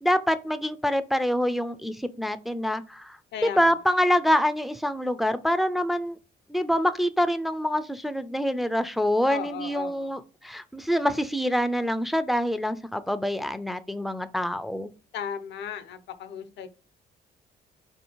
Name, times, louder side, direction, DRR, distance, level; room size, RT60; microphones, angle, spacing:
voice 1, 0.0-6.2 6.5-14.9, equal, ahead, 0.3 m, -26 dB
voice 2, 3.3-3.7 9.3-10.1 15.1-16.7, left 8 dB, 75° left, 0.5 m, -36 dB
4.1 x 2.6 x 2.8 m
cardioid pair, 85°, 18 cm